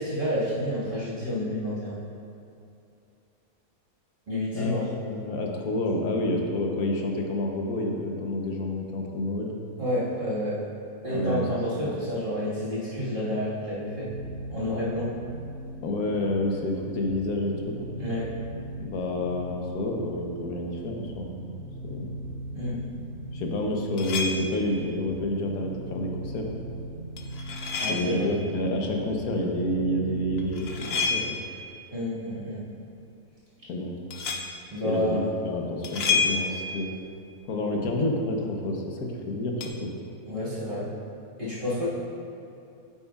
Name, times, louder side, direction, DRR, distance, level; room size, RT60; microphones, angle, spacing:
voice 1, 0.0-2.0 4.3-4.9 9.8-10.6 11.0-14.1 14.5-15.1 18.0-18.3 22.5-22.8 27.8-28.3 31.9-32.6 34.7-35.3 40.3-40.9 41.4-41.9, left 1 dB, 35° right, -9 dB, 1.9 m, -29 dB
voice 2, 4.5-9.5 11.1-11.4 11.8-11.9 15.8-17.9 18.8-21.5 21.9-22.1 23.3-26.4 27.8-31.4 33.7-34.0 34.8-36.9 37.4-39.5 39.8-39.9, left 1 dB, 80° left, 1 dB, 1.4 m, -29 dB
sound 1, 13.8-30.8, right 1 dB, 90° right, 1.4 m, -40 dB
sound 2, 24.0-24.7 27.2-28.3 30.4-31.6 34.1-34.6 35.8-36.9 39.6-39.7, left 4 dB, 55° left, 0.7 m, -29 dB
9.1 x 8.4 x 2.4 m, 2.7 s
omnidirectional pair, 1.5 m